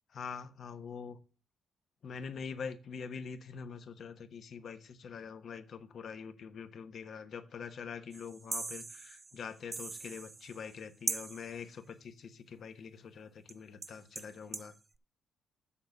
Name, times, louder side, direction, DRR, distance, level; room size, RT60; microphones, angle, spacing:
voice 1, 0.1-1.2 2.0-14.7, left 6 dB, 60° left, 1.1 m, -44 dB
sound 1, 8.1-10.8 11.1-11.6 13.5-13.6 13.8-14.7, right 3 dB, 30° right, 0.4 m, -41 dB
7.2 x 6.8 x 5.8 m
cardioid pair, 90°, 0 cm